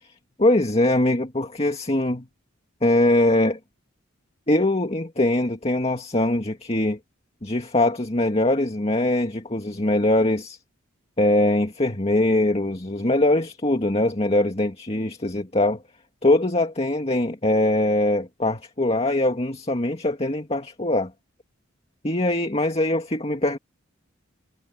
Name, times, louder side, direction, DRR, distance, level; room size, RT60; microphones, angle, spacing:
voice 1, 0.4-2.3 2.8-3.6 4.5-7.0 7.4-10.6 11.2-15.8 16.2-21.1 22.0-23.6, left 1 dB, 30° left, 2.1 m, -22 dB
head